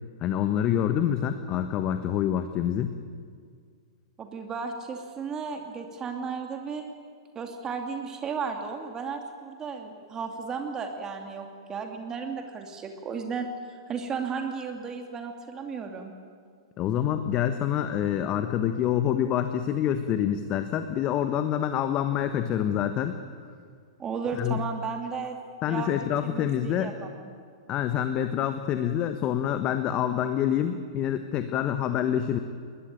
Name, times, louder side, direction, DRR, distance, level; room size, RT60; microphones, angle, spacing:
voice 1, 0.2-2.9 16.8-23.1 24.3-24.6 25.6-26.9 27.7-32.4, left 10 dB, 30° left, 9 dB, 1.3 m, -26 dB
voice 2, 4.2-6.8 7.3-16.1 24.0-25.4 25.7-27.3, right 5 dB, 20° right, 4 dB, 2.6 m, -34 dB
22.0 x 20.0 x 9.3 m, 2.1 s
figure-of-eight pair, 105°, 3 cm